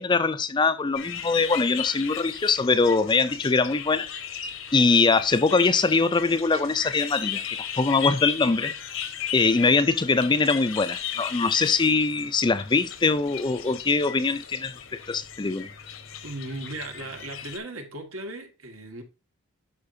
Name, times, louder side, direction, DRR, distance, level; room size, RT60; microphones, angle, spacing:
voice 1, 0.0-4.1 4.7-8.7 9.3-15.7, left 4 dB, 20° left, 0.4 m, -22 dB
sound 1, 0.9-17.6, left 9 dB, 65° left, 1.0 m, -36 dB
voice 2, 16.2-19.0, right 2 dB, 80° right, 1.8 m, -37 dB
11.5 x 4.5 x 2.7 m
head